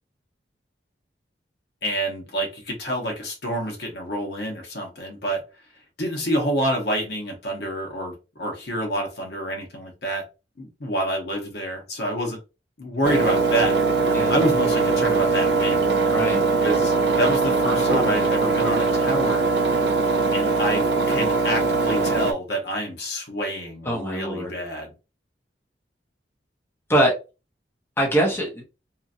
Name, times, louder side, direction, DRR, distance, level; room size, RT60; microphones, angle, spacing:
voice 1, 1.8-5.4 6.0-10.2 10.6-12.4 12.8-13.8 14.3-15.9 16.6-19.5 20.3-24.9, equal, 65° left, 1.0 m, -28 dB
Engine, 13.0-22.3, right 4 dB, 70° right, 0.5 m, -21 dB
voice 2, 16.1-16.4 23.8-24.5 26.9-27.1 28.0-28.6, right 1 dB, 15° left, 0.8 m, -22 dB
2.8 x 2.6 x 2.5 m
head